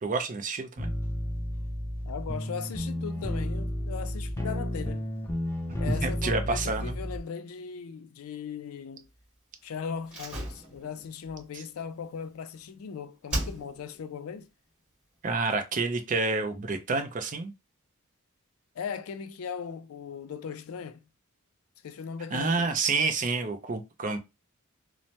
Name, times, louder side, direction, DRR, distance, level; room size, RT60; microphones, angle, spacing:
voice 1, 0.0-0.9 6.0-7.0 15.2-17.5 22.3-24.2, right 3 dB, 40° right, 0.5 m, -29 dB
sound 1, 0.8-7.2, left 1 dB, 10° left, 0.5 m, -32 dB
voice 2, 2.0-5.1 5.8-9.1 9.6-14.5 18.8-21.0 21.8-22.7, left 6 dB, 80° left, 0.4 m, -38 dB
Slam, 10.1-12.8 13.3-14.0 14.3-14.4, right 1 dB, 5° right, 1.9 m, -37 dB
3.2 x 2.0 x 2.7 m
head